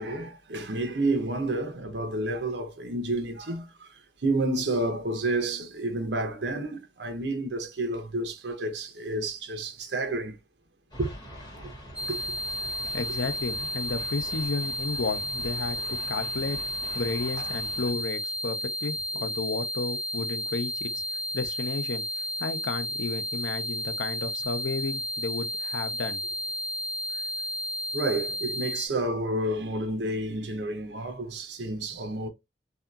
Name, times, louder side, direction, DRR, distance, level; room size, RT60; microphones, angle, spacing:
voice 1, 0.0-3.7 4.2-10.4 11.0-11.1 11.6-11.7 12.1-12.2 17.4-17.5 27.9-32.3, right 2 dB, 70° right, 0.7 m, -30 dB
sound 1, 10.9-17.9, equal, 20° left, 1.2 m, -44 dB
sound 2, 12.0-28.9, equal, 5° right, 0.3 m, -33 dB
voice 2, 12.9-15.8 16.1-16.6 16.9-21.0 21.3-22.0 22.4-26.2, left 4 dB, 80° left, 0.5 m, -32 dB
2.8 x 2.3 x 2.3 m
head